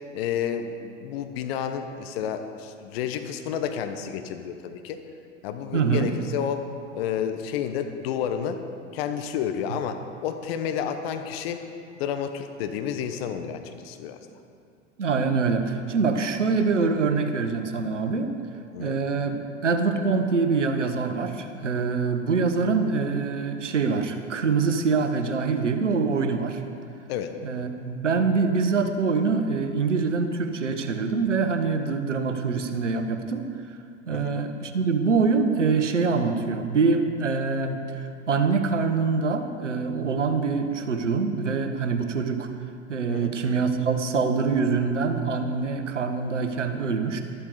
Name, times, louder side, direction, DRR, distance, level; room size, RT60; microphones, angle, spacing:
voice 1, 0.1-5.0 5.4-6.7 6.9-8.6 8.9-11.6 12.0-14.2 18.7-19.0 27.1-27.3 34.1-34.4 43.1-43.3, left 8 dB, 55° left, 7 dB, 1.1 m, -30 dB
voice 2, 5.7-6.1 15.0-18.3 18.8-26.6 27.4-33.4 34.1-42.5 42.9-47.2, right 4 dB, 80° right, 7 dB, 1.2 m, -24 dB
13.0 x 12.0 x 5.0 m, 2.5 s
figure-of-eight pair, 85°, 36 cm